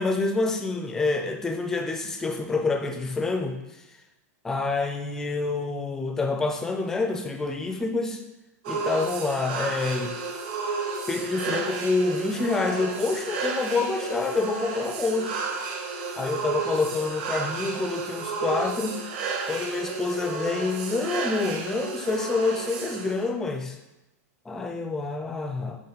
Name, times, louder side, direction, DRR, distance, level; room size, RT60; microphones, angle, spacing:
voice 1, 0.0-3.8 4.4-8.2 8.7-10.1 11.1-15.4 16.2-19.0 19.5-23.8 24.5-25.8, left 3 dB, 5° left, 3 dB, 0.4 m, -27 dB
sound 1, 8.6-23.3, right 4 dB, 35° right, 0.7 m, -32 dB
8.5 x 3.0 x 3.9 m, 0.99 s
supercardioid pair, 175°, 9 cm